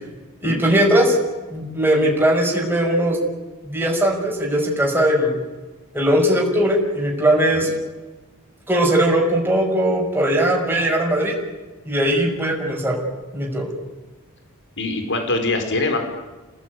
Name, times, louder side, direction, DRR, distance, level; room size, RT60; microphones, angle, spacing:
voice 1, 0.4-1.2 1.5-3.2 3.7-5.3 5.9-7.7 8.7-11.4 11.9-13.0 13.3-13.7, right 1 dB, 10° right, -2 dB, 5.9 m, -19 dB
voice 2, 14.8-16.0, left 2 dB, 55° left, 6 dB, 4.7 m, -23 dB
29.5 x 19.0 x 9.5 m, 1.2 s
head